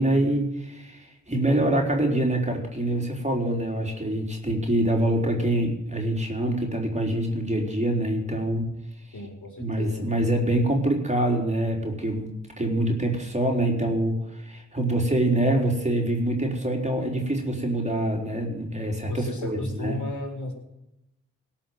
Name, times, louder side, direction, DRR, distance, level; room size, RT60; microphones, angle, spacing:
voice 1, 0.0-8.7 9.6-20.0, right 1 dB, 20° right, 1 dB, 3.9 m, -25 dB
voice 2, 9.1-10.1 19.1-20.5, left 2 dB, 50° left, 2 dB, 4.3 m, -34 dB
17.5 x 6.0 x 9.3 m, 0.92 s
supercardioid pair, 40°, 36 cm